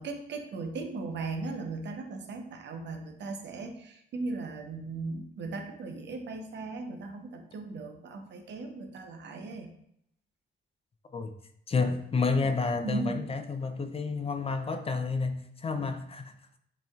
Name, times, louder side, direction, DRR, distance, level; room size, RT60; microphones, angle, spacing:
voice 1, 0.0-9.7 11.8-11.9 12.8-13.2 15.7-15.9, right 3 dB, 60° right, 0.7 m, -37 dB
voice 2, 11.7-16.3, left 4 dB, 30° left, 0.4 m, -30 dB
7.0 x 2.9 x 2.4 m
cardioid pair, 90°, 20 cm